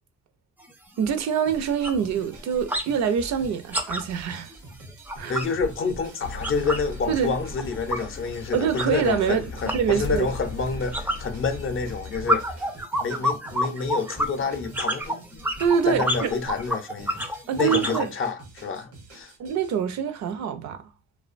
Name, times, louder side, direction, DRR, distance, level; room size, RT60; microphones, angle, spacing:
sound 1, 0.6-0.7 1.1-1.3 1.6-2.9 3.2-6.9 7.2-18.1, equal, 5° right, 0.4 m, -30 dB
voice 1, 1.0-4.5 5.2-5.3 7.1-7.4 8.5-9.4 9.7-10.3 15.6-16.3 17.5-18.1 19.4-20.9, right 7 dB, 65° right, 0.5 m, -25 dB
sound 2, 1.5-19.8, right 3 dB, 85° right, 0.9 m, -48 dB
voice 2, 5.3-12.6 13.0-15.5 15.9-17.2 17.6-19.3, left 4 dB, 45° left, 0.5 m, -28 dB
sound 3, 6.2-12.7, left 4 dB, 90° left, 0.5 m, -38 dB
2.4 x 2.1 x 2.4 m
cardioid pair, 90°, 30 cm